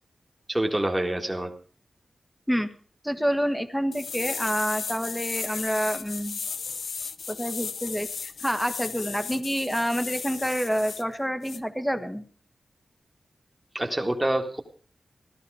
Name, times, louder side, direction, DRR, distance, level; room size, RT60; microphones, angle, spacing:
voice 1, 0.5-1.5 13.7-14.6, right 1 dB, 15° right, 2 dB, 1.8 m, -26 dB
voice 2, 3.0-6.4 7.3-12.2, equal, ahead, 9 dB, 1.3 m, -28 dB
sound 1, 3.9-11.0 11.4-11.6, left 5 dB, 80° left, 0.6 m, -35 dB
15.5 x 12.0 x 4.9 m, 0.42 s
cardioid pair, 65°, 0 cm